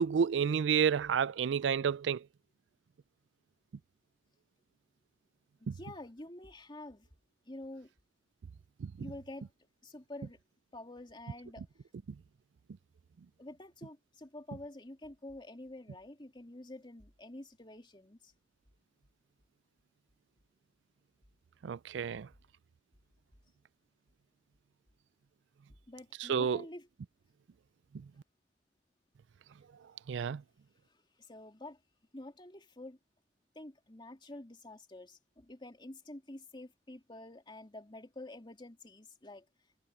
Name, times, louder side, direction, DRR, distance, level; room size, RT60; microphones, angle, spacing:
voice 1, 0.0-2.3 5.7-5.8 8.8-8.9 21.6-22.3 26.2-26.6 30.1-30.4, right 7 dB, 80° right, 0.4 m, -30 dB
voice 2, 5.7-7.1 7.5-7.9 9.0-9.5 9.8-10.4 10.7-11.7 13.4-18.3 25.9-26.9 31.2-31.8 32.1-33.0 33.5-39.4, left 1 dB, 25° left, 2.7 m, -48 dB
head